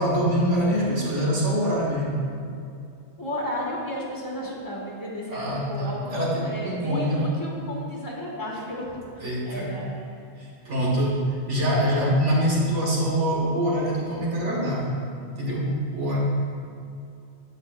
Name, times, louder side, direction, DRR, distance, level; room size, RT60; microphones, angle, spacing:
voice 1, 0.0-2.1 5.3-7.3 9.2-9.8 10.4-14.9 15.4-16.2, equal, 85° right, -5 dB, 2.0 m, -24 dB
voice 2, 3.2-9.9, equal, 20° left, -4 dB, 1.4 m, -33 dB
13.0 x 5.5 x 2.5 m, 2.4 s
omnidirectional pair, 1.2 m